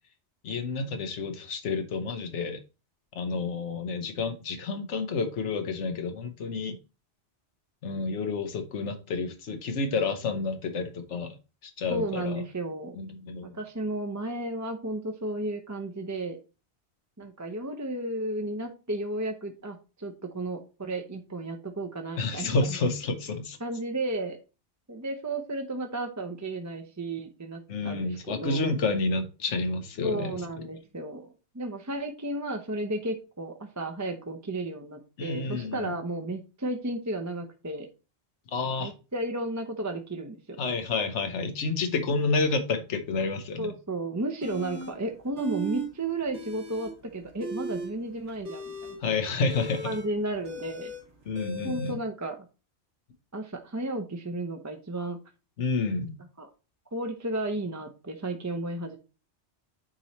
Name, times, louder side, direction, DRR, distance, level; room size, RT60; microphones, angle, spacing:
voice 1, 0.4-2.6 3.2-6.8 7.8-11.4 11.6-12.4 13.0-13.5 22.2-23.6 27.7-30.4 35.2-35.8 38.5-38.9 40.6-43.7 49.0-49.9 51.3-51.9 55.6-56.2, left 3 dB, 90° left, 1.2 m, -29 dB
voice 2, 11.9-13.0 13.4-16.4 17.2-22.8 23.6-24.4 24.9-28.7 30.0-37.9 38.8-40.6 43.6-49.0 49.8-50.9 51.6-52.5 53.3-55.2 56.4-56.5 56.9-59.0, right 2 dB, 20° right, 0.6 m, -33 dB
sound 1, 44.4-44.9 45.3-45.9 46.2-46.9 47.3-51.9, right 3 dB, 80° right, 2.6 m, -37 dB
8.9 x 3.1 x 4.2 m
omnidirectional pair, 1.2 m